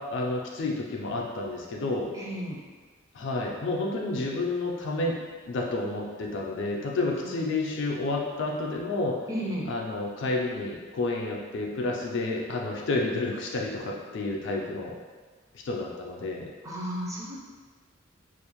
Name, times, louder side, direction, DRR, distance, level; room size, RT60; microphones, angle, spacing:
voice 1, 0.0-2.1 3.1-5.2 5.5-9.2 9.7-15.0 15.6-16.5, left 2 dB, 65° left, -1 dB, 0.4 m, -30 dB
voice 2, 2.1-2.6 7.2-7.4 9.3-9.7 16.6-17.4, equal, 15° right, -5 dB, 0.4 m, -33 dB
2.5 x 2.0 x 2.9 m, 1.4 s
head